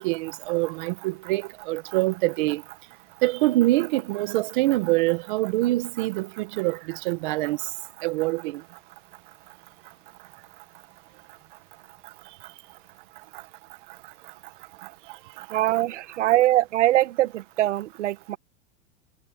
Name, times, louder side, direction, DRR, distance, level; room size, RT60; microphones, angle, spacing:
voice 1, 0.0-2.6 3.2-7.7 8.0-8.6 15.4-15.6, right 18 dB, 40° right, 1.4 m, -25 dB
voice 2, 15.5-18.4, right 15 dB, 65° right, 1.6 m, -22 dB
supercardioid pair, 170°, 39 cm